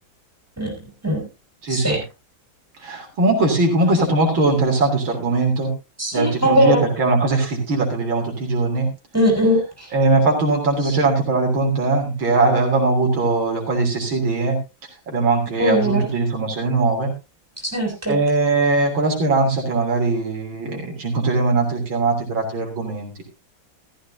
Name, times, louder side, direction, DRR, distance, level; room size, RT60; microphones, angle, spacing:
voice 1, 1.6-2.0 2.8-5.7 6.1-8.9 9.9-14.6 15.1-17.1 18.1-23.1, right 3 dB, 85° right, 1 dB, 4.1 m, -20 dB
voice 2, 6.0-6.9 9.1-9.6 15.6-16.0 17.7-18.2, equal, 5° right, 1 dB, 6.8 m, -19 dB
15.0 x 14.5 x 2.7 m, 0.27 s
omnidirectional pair, 2.1 m